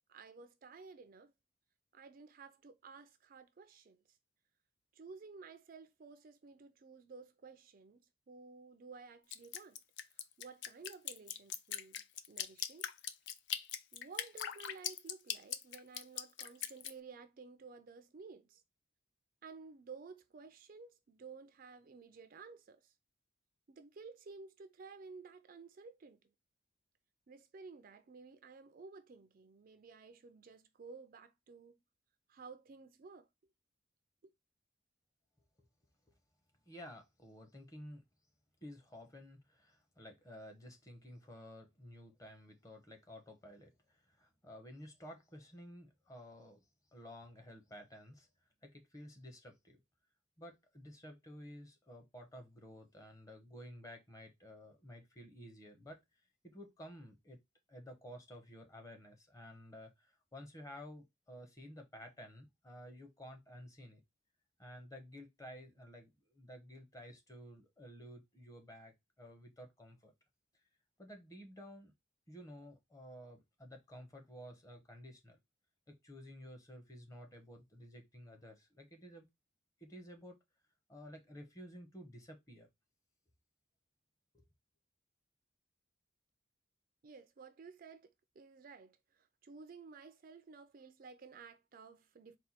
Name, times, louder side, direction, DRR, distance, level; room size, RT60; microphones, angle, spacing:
voice 1, 0.1-1.3 1.9-4.2 4.9-9.8 10.1-12.9 13.9-18.6 19.4-22.9 23.7-26.2 27.3-31.8 32.3-33.3 87.0-92.4, right 4 dB, 45° right, 0.4 m, -54 dB
Drip, 9.3-16.9, left 10 dB, 60° left, 0.4 m, -40 dB
voice 2, 36.7-38.0 38.6-46.6 46.9-48.3 48.6-49.8 50.4-56.0 56.4-57.4 57.7-64.0 64.6-70.1 71.0-71.9 72.3-75.4 75.9-79.3 79.8-80.4 80.9-82.7 84.3-84.4, equal, 15° left, 0.8 m, -53 dB
4.2 x 2.3 x 4.2 m
head